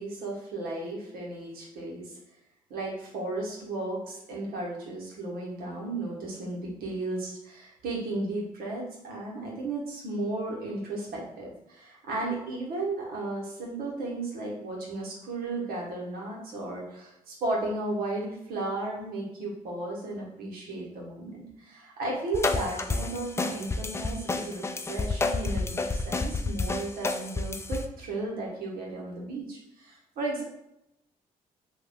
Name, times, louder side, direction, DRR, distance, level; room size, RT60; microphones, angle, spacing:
voice 1, 0.0-2.2 2.7-30.4, right 2 dB, 75° right, -3 dB, 1.1 m, -34 dB
sound 1, 22.3-27.8, left 3 dB, 15° left, 0.3 m, -30 dB
2.9 x 2.3 x 3.4 m, 0.84 s
supercardioid pair, 55°, 16 cm